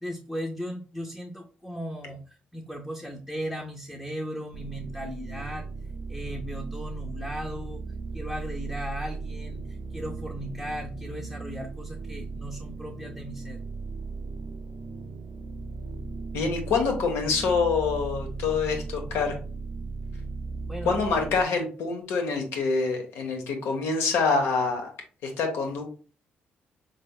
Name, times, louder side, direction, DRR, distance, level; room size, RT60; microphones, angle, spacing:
voice 1, 0.0-5.7 6.1-7.8 8.1-13.6 20.7-21.0, equal, 5° left, 1 dB, 0.6 m, -37 dB
sound 1, 4.5-21.4, right 4 dB, 50° right, 0.5 m, -37 dB
voice 2, 16.3-19.4 20.8-24.9 25.2-25.9, left 4 dB, 85° left, 3 dB, 1.0 m, -26 dB
4.4 x 3.3 x 2.2 m, 0.38 s
supercardioid pair, 70°, 4 cm